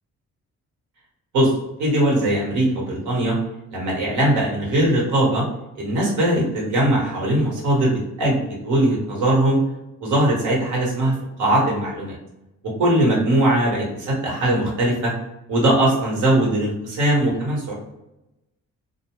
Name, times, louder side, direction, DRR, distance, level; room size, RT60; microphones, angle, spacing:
voice 1, 1.8-3.4 3.7-5.4 5.7-8.4 8.6-9.6 10.0-12.2 12.6-15.1 15.5-17.7, right 1 dB, 80° right, -3 dB, 1.1 m, -20 dB
2.6 x 2.1 x 3.0 m, 0.94 s
cardioid pair, 90°, 30 cm